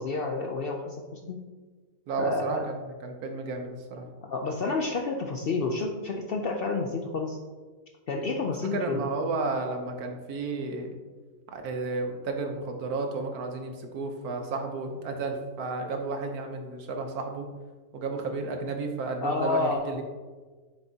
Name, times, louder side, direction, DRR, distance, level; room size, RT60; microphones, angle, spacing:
voice 1, 0.0-1.4 2.2-2.7 4.2-7.4 8.1-9.1 19.2-19.8, left 3 dB, 65° left, 2 dB, 0.6 m, -30 dB
voice 2, 2.1-4.1 8.7-11.0 11.5-17.5 17.9-20.0, right 3 dB, 85° right, 4 dB, 1.4 m, -32 dB
7.1 x 6.5 x 2.8 m, 1.4 s
omnidirectional pair, 1.5 m